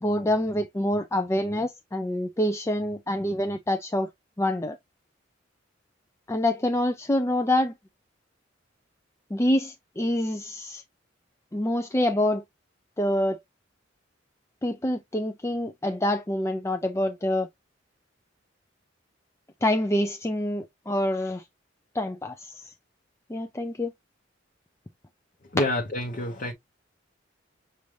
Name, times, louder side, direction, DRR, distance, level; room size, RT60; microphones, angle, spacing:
voice 1, 0.0-4.1 4.4-4.8 6.3-7.7 9.3-10.8 11.5-12.4 13.0-13.4 14.6-17.5 19.6-21.4 21.9-22.7 23.3-23.9, left 1 dB, 15° left, 0.4 m, -26 dB
voice 2, 25.5-26.5, left 1 dB, 45° left, 0.9 m, -28 dB
6.2 x 2.6 x 3.2 m
head